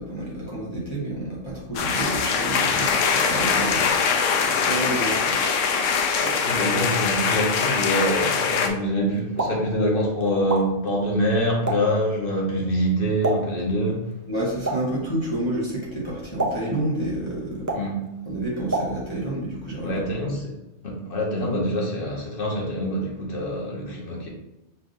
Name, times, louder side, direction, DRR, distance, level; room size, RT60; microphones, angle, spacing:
voice 1, 0.0-4.0 4.5-5.4 14.3-17.7 18.3-20.0, right 1 dB, 25° left, -7 dB, 1.4 m, -29 dB
sound 1, 1.7-8.7, left 6 dB, 85° left, 1.0 m, -22 dB
voice 2, 6.2-14.1 17.7-18.1 19.8-20.5 20.8-24.3, equal, 50° left, -2 dB, 1.3 m, -25 dB
Explosion, 9.1-19.4, right 2 dB, 25° right, 0.4 m, -33 dB
5.7 x 3.5 x 2.6 m, 0.97 s
omnidirectional pair, 1.3 m